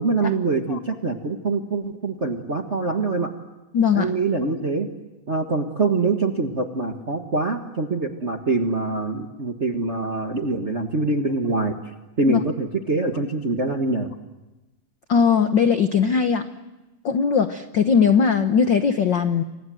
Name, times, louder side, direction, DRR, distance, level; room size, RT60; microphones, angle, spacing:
voice 1, 0.0-3.3 3.9-4.9 5.3-11.8 12.2-14.1, right 3 dB, 45° right, 4 dB, 0.9 m, -24 dB
voice 2, 3.7-4.1 12.3-12.4 15.1-16.4 17.0-19.4, left 6 dB, 80° left, 9 dB, 1.0 m, -19 dB
29.5 x 25.0 x 7.7 m, 1.1 s
omnidirectional pair, 3.6 m